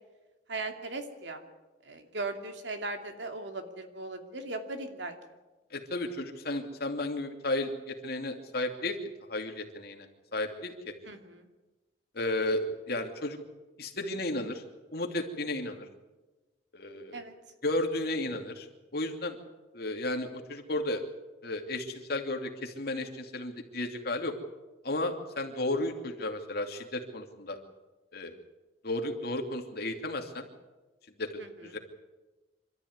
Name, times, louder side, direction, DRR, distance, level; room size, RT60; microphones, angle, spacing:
voice 1, 0.5-1.4 1.8-5.1 11.1-11.5 17.1-17.3 31.4-31.7, right 2 dB, 75° right, 5 dB, 2.7 m, -38 dB
voice 2, 5.7-9.0 9.3-10.1 10.3-10.9 12.1-13.4 13.8-14.6 14.9-15.9 16.7-17.2 17.6-18.7 18.9-19.4 19.7-21.0 21.4-24.3 24.8-27.6 28.1-28.3 28.8-30.5 31.2-31.3 31.6-31.8, left 2 dB, 55° left, 4 dB, 2.7 m, -33 dB
26.0 x 13.5 x 9.5 m, 1.2 s
head